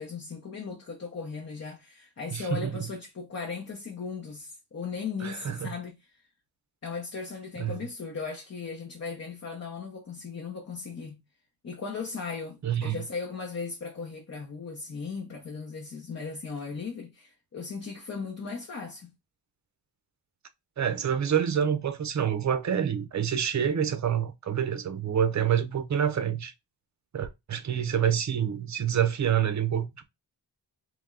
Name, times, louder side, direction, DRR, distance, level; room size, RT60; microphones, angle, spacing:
voice 1, 0.0-6.2 6.8-11.2 11.6-19.1, left 5 dB, 40° left, 0.8 m, -37 dB
voice 2, 2.3-2.9 5.2-5.7 7.6-7.8 12.6-13.0 20.8-26.5 27.1-30.0, right 8 dB, 45° right, 0.6 m, -27 dB
3.4 x 3.1 x 3.7 m
wide cardioid pair, 165°, 42 cm